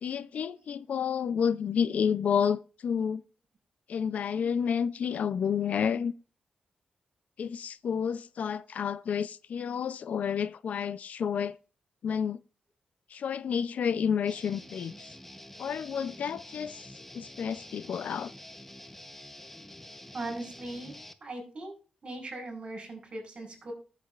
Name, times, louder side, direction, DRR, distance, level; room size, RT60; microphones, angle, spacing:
voice 1, 0.0-3.2 3.9-6.1 7.4-11.6 12.0-12.4 13.1-15.1 15.6-16.9 17.1-18.3, left 7 dB, 70° left, 0.5 m, -30 dB
Guitar, 14.3-21.1, left 1 dB, 10° left, 0.9 m, -48 dB
voice 2, 20.1-20.9 21.2-21.7 22.0-23.7, right 2 dB, 45° right, 5.2 m, -39 dB
20.0 x 7.6 x 2.5 m
wide cardioid pair, 125°, 3 cm